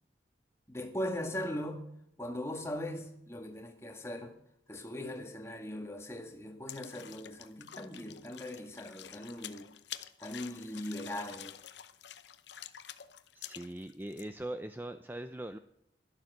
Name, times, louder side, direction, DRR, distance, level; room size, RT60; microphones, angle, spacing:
voice 1, 0.7-1.8 2.2-4.3 4.7-9.7 10.2-11.6, left 1 dB, 15° left, 4 dB, 1.7 m, -40 dB
sound 1, 6.7-14.3, left 10 dB, 70° left, 0.8 m, -48 dB
voice 2, 13.3-15.6, right 1 dB, 10° right, 9 dB, 0.4 m, -41 dB
12.0 x 11.5 x 6.6 m, 0.76 s
head